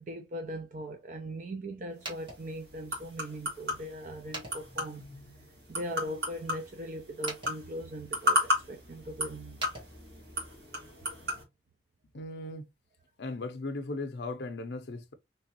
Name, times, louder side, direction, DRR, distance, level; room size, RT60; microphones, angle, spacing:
voice 1, 0.0-5.1 5.7-9.7, equal, 45° right, 0.5 m, -40 dB
sound 1, 1.9-10.6, right 1 dB, 25° right, 1.3 m, -49 dB
sound 2, 2.0-11.4, left 1 dB, 65° right, 1.8 m, -35 dB
voice 2, 12.1-12.7 13.2-15.1, left 2 dB, 65° left, 0.6 m, -37 dB
3.3 x 2.9 x 2.8 m
head